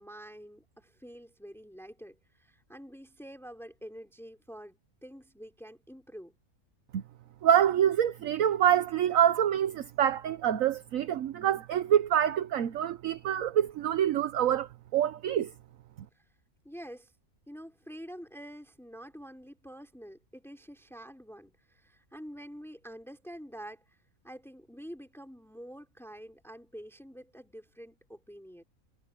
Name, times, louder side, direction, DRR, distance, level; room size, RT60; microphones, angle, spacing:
voice 1, 0.0-6.3 16.1-16.3 16.6-17.1 17.5-28.6, equal, ahead, 3.6 m, -47 dB
voice 2, 7.4-15.5, right 10 dB, 70° right, 1.2 m, -26 dB
omnidirectional pair, 1.5 m